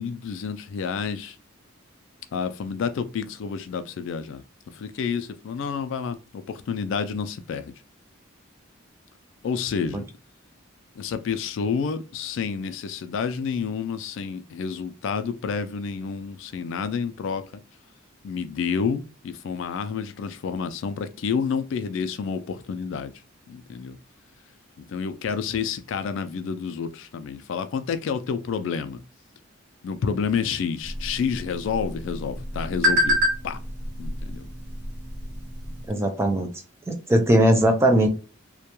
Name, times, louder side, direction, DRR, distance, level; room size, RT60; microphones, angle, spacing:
voice 1, 0.0-1.4 2.3-4.4 4.7-7.7 9.4-10.0 11.0-17.5 18.2-23.1 23.5-24.0 24.8-29.0 29.8-33.6 34.0-34.5, left 6 dB, 65° left, 0.3 m, -29 dB
sound 1, 30.8-35.9, equal, 55° right, 1.0 m, -28 dB
voice 2, 35.9-36.5 36.9-38.1, right 1 dB, 15° right, 0.4 m, -19 dB
2.2 x 2.2 x 2.9 m
head